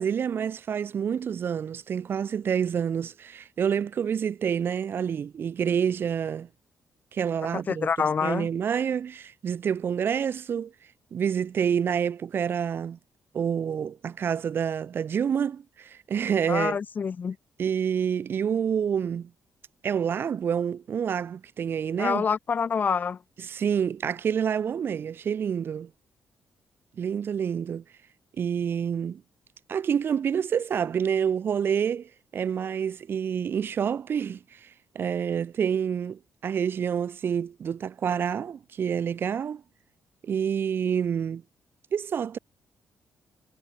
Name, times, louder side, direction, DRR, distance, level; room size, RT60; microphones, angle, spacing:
voice 1, 0.0-6.5 7.1-10.7 11.1-13.0 13.3-16.8 17.6-19.3 19.8-22.2 23.4-25.9 27.0-27.8 28.4-29.2 29.7-34.4 34.9-39.6 40.2-41.4 41.9-42.4, right 7 dB, 45° right, 1.4 m, -28 dB
voice 2, 7.5-8.5 16.5-17.4 22.0-23.2, left 6 dB, 35° left, 1.2 m, -27 dB
wide cardioid pair, 170°, 5 cm